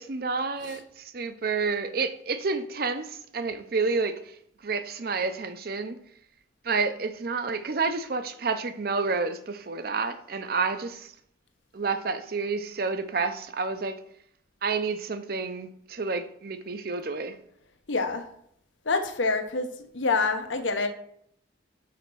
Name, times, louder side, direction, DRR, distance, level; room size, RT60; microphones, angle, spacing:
voice 1, 0.0-4.1 4.6-6.0 6.6-11.1 11.7-13.9 14.6-17.4, right 4 dB, 50° right, 0.6 m, -29 dB
voice 2, 17.9-18.2 18.9-19.7 19.9-20.9, left 3 dB, 85° left, 0.9 m, -26 dB
5.7 x 4.1 x 6.1 m
head